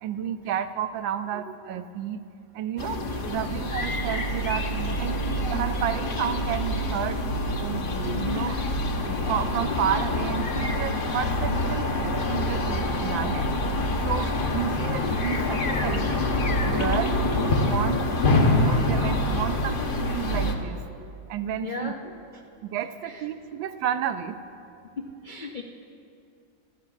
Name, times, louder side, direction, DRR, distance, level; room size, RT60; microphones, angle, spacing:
voice 1, 0.0-2.2 2.5-3.0 3.3-7.2 7.6-8.6 9.0-13.5 14.0-16.2 16.6-18.0 18.3-20.8 21.3-21.9 22.6-24.4, right 9 dB, 80° right, 11 dB, 1.4 m, -31 dB
sound 1, 2.8-20.6, left 1 dB, 40° left, 0.8 m, -26 dB
voice 2, 3.2-3.5 8.1-8.5 21.0-21.1 21.6-22.1 23.0-23.2 25.0-25.6, left 3 dB, 65° left, 1 dB, 0.4 m, -36 dB
26.0 x 16.5 x 2.4 m, 2.6 s
omnidirectional pair, 2.0 m